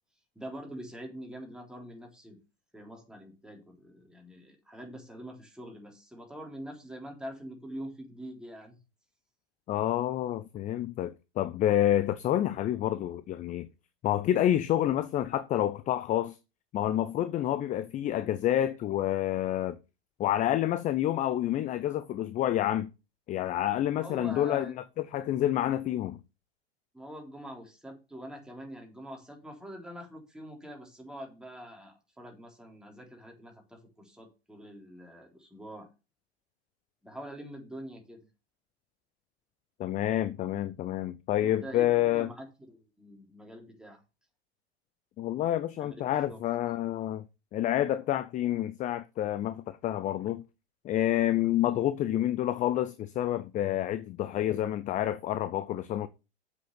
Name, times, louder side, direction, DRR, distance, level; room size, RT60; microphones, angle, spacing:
voice 1, 0.4-2.4 2.7-8.8 23.9-24.8 26.9-35.9 37.0-38.3 41.6-44.0 45.8-45.9 46.3-46.4, equal, ahead, 3.6 m, -44 dB
voice 2, 9.7-13.7 14.0-16.4 16.7-19.8 20.2-22.9 23.3-24.7 25.1-26.2 39.8-42.3 45.2-47.2 47.5-50.4 50.8-56.1, left 12 dB, 25° left, 0.6 m, -28 dB
7.7 x 6.7 x 7.0 m
hypercardioid pair, 100°, 32 cm